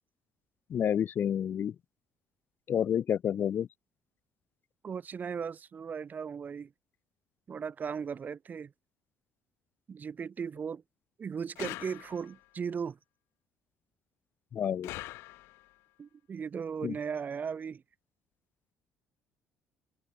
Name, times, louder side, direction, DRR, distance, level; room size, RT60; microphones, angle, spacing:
voice 1, 0.7-1.7 2.7-3.7 14.5-14.9 16.8-16.9, left 9 dB, 50° left, 0.7 m, -29 dB
voice 2, 4.8-6.7 7.5-8.7 9.9-10.8 11.2-13.0 16.0-17.8, right 6 dB, 40° right, 0.9 m, -37 dB
sound 1, 11.6-12.5 14.8-15.8, left 19 dB, 70° left, 1.4 m, -43 dB
open air
hypercardioid pair, 55°, 4 cm